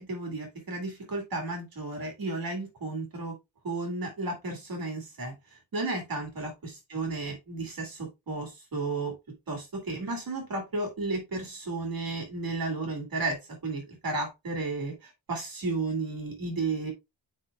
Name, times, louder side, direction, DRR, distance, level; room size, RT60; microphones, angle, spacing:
voice 1, 0.0-3.3 3.6-5.3 5.7-9.1 9.5-13.4 13.6-16.9, right 3 dB, 45° right, 1 dB, 2.3 m, -33 dB
7.9 x 5.0 x 2.4 m, 0.23 s
wide cardioid pair, 175°, 48 cm